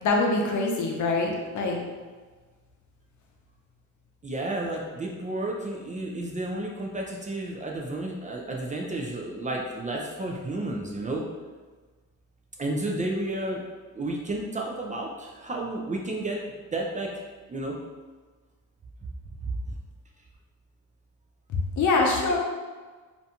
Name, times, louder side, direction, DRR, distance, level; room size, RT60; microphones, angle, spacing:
voice 1, 0.0-1.8 21.5-22.4, left 3 dB, 60° left, 0 dB, 0.6 m, -24 dB
voice 2, 4.2-11.2 12.6-13.6 13.9-16.4 16.7-17.1 17.5-17.8 19.7-19.8, right 2 dB, 25° right, -1 dB, 0.4 m, -31 dB
2.6 x 2.1 x 2.8 m, 1.4 s
cardioid pair, 75°, 33 cm